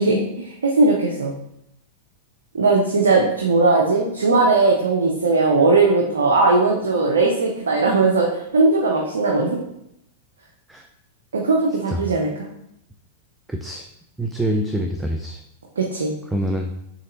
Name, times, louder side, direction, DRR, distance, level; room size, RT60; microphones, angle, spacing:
voice 1, 0.0-1.3 2.5-9.6 11.3-12.3 15.8-16.1, right 3 dB, 85° right, -1 dB, 0.7 m, -18 dB
voice 2, 13.5-13.8 14.2-15.4 16.3-16.7, right 1 dB, 5° right, 3 dB, 0.4 m, -25 dB
4.0 x 3.2 x 3.9 m, 0.78 s
hypercardioid pair, 105°, 0 cm